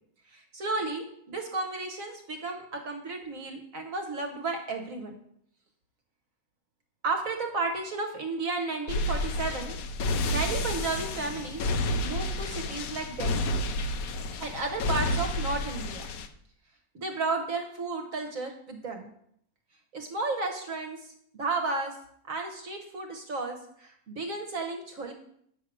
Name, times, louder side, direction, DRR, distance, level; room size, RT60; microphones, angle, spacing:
voice 1, 0.3-5.2 7.0-9.8 10.3-11.7 12.0-13.5 14.4-16.1 16.9-19.1 19.9-21.0 21.3-22.0 22.2-25.1, right 3 dB, 60° right, 4 dB, 1.5 m, -33 dB
sound 1, 8.9-16.3, left 1 dB, 70° left, 1.2 m, -30 dB
9.1 x 6.4 x 6.3 m, 0.68 s
omnidirectional pair, 1.6 m